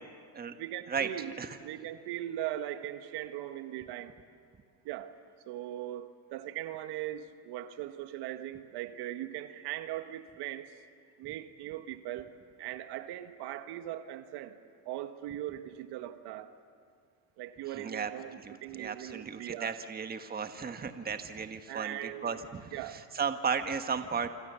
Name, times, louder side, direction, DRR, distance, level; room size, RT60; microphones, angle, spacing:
voice 1, 0.6-4.1 4.8-5.1 5.5-10.7 11.2-12.3 12.6-14.5 14.8-16.5 17.4-19.8 21.7-22.4 22.7-23.0, right 13 dB, 65° right, 9 dB, 1.5 m, -39 dB
voice 2, 17.6-24.3, right 6 dB, 20° right, 8 dB, 1.4 m, -35 dB
27.5 x 26.0 x 6.9 m, 2.2 s
supercardioid pair, 100°, 43 cm